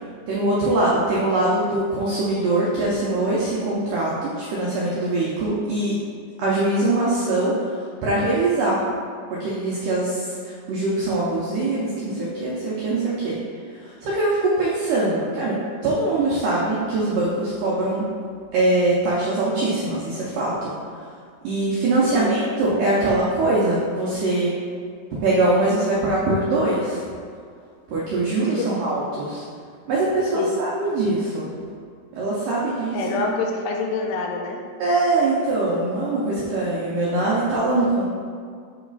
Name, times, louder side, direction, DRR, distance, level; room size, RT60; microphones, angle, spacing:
voice 1, 0.3-6.0 6.4-7.7 8.0-8.8 9.3-13.4 13.8-18.0 18.5-20.7 21.4-24.5 25.2-27.0 27.9-29.4 29.9-31.5 32.2-33.3 34.8-38.0, right 2 dB, 85° right, -6 dB, 1.9 m, -22 dB
voice 2, 22.0-22.4 28.4-28.8 30.3-30.6 32.9-34.6, left 4 dB, 85° left, 2 dB, 2.7 m, -27 dB
8.0 x 3.0 x 4.0 m, 2.1 s
omnidirectional pair, 4.8 m